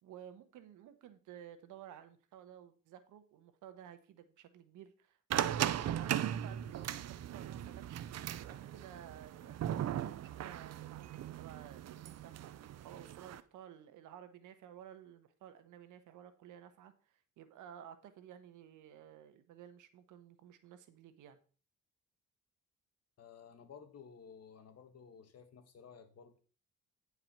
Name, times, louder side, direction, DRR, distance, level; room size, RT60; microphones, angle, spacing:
voice 1, 0.0-8.0 8.4-21.4, right 10 dB, 85° right, 10 dB, 1.2 m, -54 dB
sound 1, 5.3-13.4, right 11 dB, 60° right, 0.6 m, -38 dB
voice 2, 23.2-26.4, left 6 dB, 55° left, 8 dB, 1.7 m, -55 dB
9.5 x 4.8 x 5.9 m, 0.39 s
cardioid pair, 90°, 30 cm